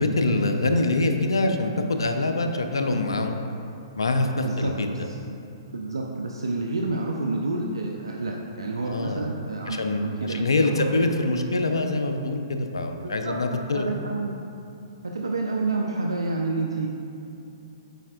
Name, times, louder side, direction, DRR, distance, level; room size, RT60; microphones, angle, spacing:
voice 1, 0.0-3.4 4.0-4.9 8.9-9.3 9.7-13.9, left 2 dB, 85° left, 5 dB, 0.5 m, -24 dB
voice 2, 4.4-5.2 5.7-10.9 13.0-13.3 13.6-14.3 15.0-16.9, right 3 dB, 85° right, 0 dB, 0.4 m, -29 dB
9.0 x 4.2 x 2.5 m, 2.7 s
hypercardioid pair, 120°, 2 cm